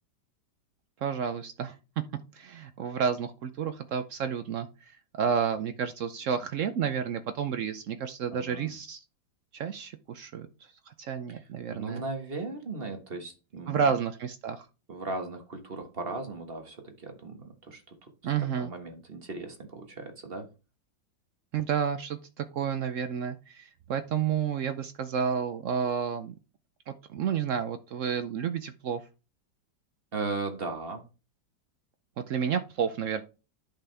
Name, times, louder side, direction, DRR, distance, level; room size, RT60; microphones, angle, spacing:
voice 1, 1.0-1.8 2.3-9.0 9.5-10.5 10.9-12.0 13.7-14.7 18.2-18.7 21.5-26.3 26.9-29.0 32.2-33.2, right 7 dB, 80° right, 10 dB, 0.7 m, -31 dB
voice 2, 8.3-8.7 11.3-13.8 14.9-18.3 18.6-20.5 30.1-31.0, right 3 dB, 35° right, 5 dB, 1.4 m, -37 dB
10.5 x 5.9 x 3.3 m, 0.31 s
omnidirectional pair, 2.1 m